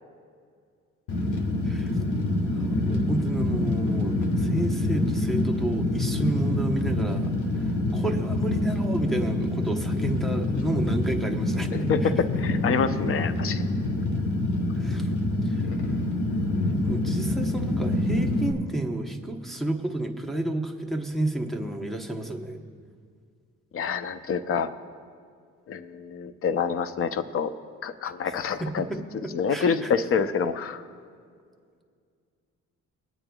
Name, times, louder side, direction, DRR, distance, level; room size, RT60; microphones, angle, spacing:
Fire, 1.1-18.5, left 1 dB, 75° left, 1.3 m, -26 dB
voice 1, 1.6-2.0 2.5-12.1 14.8-15.1 15.4-15.6 16.8-22.6 28.0-28.3 28.6-28.9 29.2-29.9, right 1 dB, ahead, 4 dB, 0.9 m, -31 dB
voice 2, 11.9-13.6 23.7-24.7 25.7-27.5 27.8-28.8 29.3-30.8, left 6 dB, 45° left, 11 dB, 0.6 m, -27 dB
25.0 x 8.9 x 2.3 m, 2.2 s
cardioid pair, 90°, 30 cm